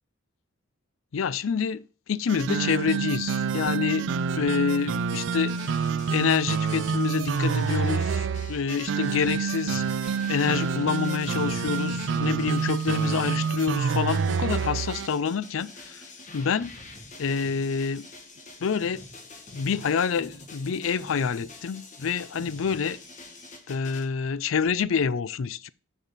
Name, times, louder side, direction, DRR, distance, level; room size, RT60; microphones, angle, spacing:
voice 1, 1.1-5.7 6.1-9.8 10.3-16.0 16.3-16.8 17.2-18.1 18.6-19.0 19.5-23.0 23.7-25.7, left 6 dB, 80° left, 0.4 m, -27 dB
sound 1, 2.3-15.1, right 5 dB, 65° right, 0.4 m, -27 dB
sound 2, 5.4-24.0, left 2 dB, 35° left, 1.5 m, -46 dB
6.8 x 6.4 x 4.1 m
head